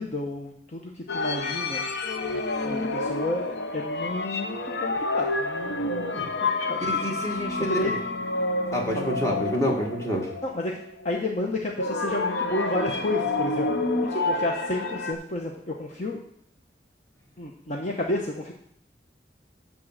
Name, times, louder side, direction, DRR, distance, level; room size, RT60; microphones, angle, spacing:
voice 1, 0.0-1.8 2.6-6.8 7.7-7.9 8.9-9.1 10.4-16.2 17.4-18.5, left 2 dB, 40° left, 0 dB, 0.9 m, -31 dB
sound 1, 1.1-11.1 11.8-15.1, left 2 dB, 75° left, 0.8 m, -29 dB
voice 2, 6.8-8.0 8.7-10.3, equal, 20° left, -1 dB, 1.9 m, -28 dB
11.5 x 3.8 x 7.4 m, 0.67 s
head